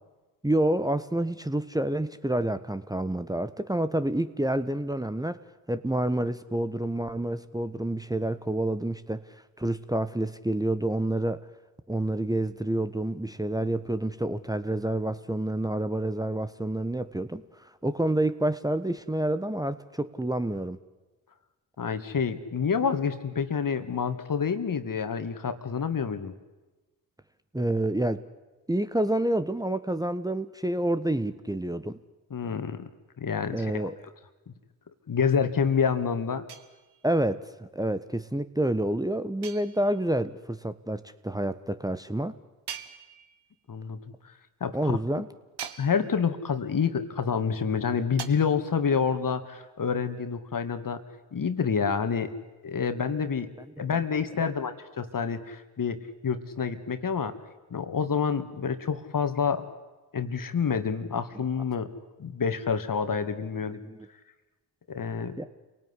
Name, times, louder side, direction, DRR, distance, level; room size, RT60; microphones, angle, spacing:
voice 1, 0.4-5.4 5.7-9.2 9.6-11.4 11.9-20.8 27.5-28.2 28.7-32.0 33.5-34.0 37.0-42.3 44.7-45.3 53.8-53.9 54.4-54.5 61.3-61.4 63.7-64.1 65.4-65.5, right 1 dB, 10° right, 10 dB, 1.3 m, -28 dB
voice 2, 21.8-26.3 32.3-32.9 33.2-33.9 35.1-36.5 43.7-44.0 44.2-44.3 44.6-45.0 45.8-51.0 51.3-52.3 52.6-53.5 53.8-57.3 57.7-59.7 60.1-61.9 62.2-63.8 64.9-65.4, left 6 dB, 45° left, 10 dB, 2.3 m, -28 dB
sound 1, 36.5-37.2 39.4-40.2 42.7-43.6 45.6-46.4 48.2-48.3, right 8 dB, 60° right, 2.0 m, -42 dB
27.5 x 18.5 x 9.9 m, 1.2 s
hypercardioid pair, 45°, 44 cm